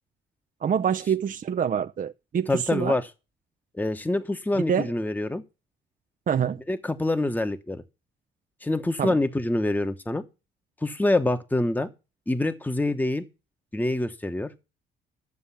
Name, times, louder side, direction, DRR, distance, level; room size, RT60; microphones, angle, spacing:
voice 1, 0.6-3.0 4.7-4.9 6.3-6.6 9.0-9.2, right 8 dB, 45° right, 0.6 m, -26 dB
voice 2, 2.5-3.1 3.7-5.4 6.7-7.8 8.6-10.2 10.8-11.9 12.3-13.2 13.7-14.5, left 2 dB, 10° left, 1.1 m, -26 dB
12.0 x 7.1 x 5.7 m
cardioid pair, 90°, 20 cm